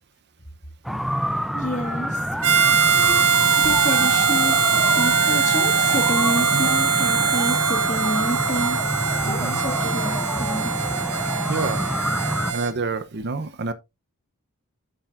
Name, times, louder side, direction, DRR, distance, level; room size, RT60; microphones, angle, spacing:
sound 1, 0.8-12.5, equal, ahead, 0.4 m, -27 dB
voice 1, 1.5-2.3 2.9-4.6 5.0-8.8 9.2-10.7, left 1 dB, 35° left, 2.1 m, -29 dB
Harmonica, 2.4-12.7, right 6 dB, 85° right, 1.6 m, -21 dB
voice 2, 9.2-9.6 11.5-11.8 12.5-13.7, right 3 dB, 50° right, 0.7 m, -27 dB
8.8 x 7.7 x 2.5 m
head